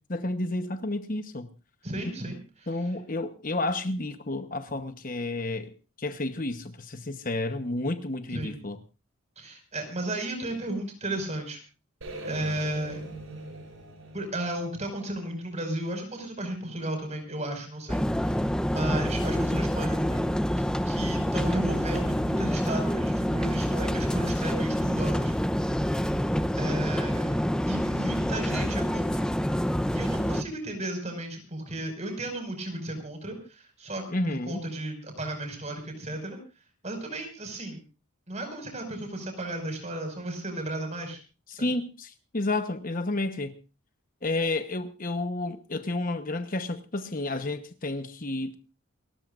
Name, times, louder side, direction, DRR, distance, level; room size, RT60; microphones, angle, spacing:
voice 1, 0.1-1.5 2.7-5.7 6.0-8.8 34.1-34.6 41.5-43.5 44.2-48.5, left 2 dB, 40° left, 1.0 m, -31 dB
voice 2, 1.8-2.8 8.3-8.6 9.4-11.6 12.3-13.0 14.1-20.3 20.8-25.3 26.6-27.4 27.7-29.3 29.9-36.4 36.8-37.8 38.3-41.2 41.6-41.7, right 1 dB, 30° right, 5.5 m, -34 dB
sound 1, 12.0-16.1, right 1 dB, 70° right, 7.8 m, -42 dB
sound 2, 17.9-30.4, equal, 5° left, 0.7 m, -27 dB
29.0 x 14.0 x 2.5 m
head